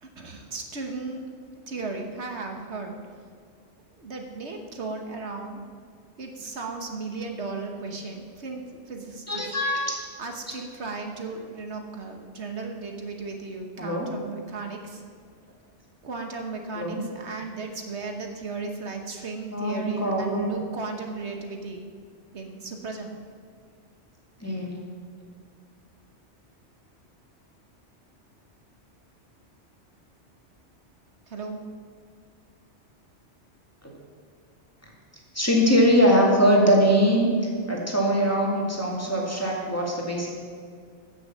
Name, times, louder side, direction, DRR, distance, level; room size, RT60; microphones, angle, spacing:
voice 1, 0.0-1.2 1.7-2.9 3.9-5.6 6.2-9.4 10.2-15.0 16.0-21.8 22.3-23.1 31.3-31.6, right 3 dB, 70° right, 3 dB, 1.5 m, -35 dB
voice 2, 9.3-10.1 13.8-14.1 16.8-17.0 19.5-20.4 24.4-24.8 33.8-33.9 35.3-40.3, equal, 10° left, -3 dB, 2.3 m, -22 dB
14.5 x 6.6 x 7.4 m, 2.1 s
omnidirectional pair, 1.2 m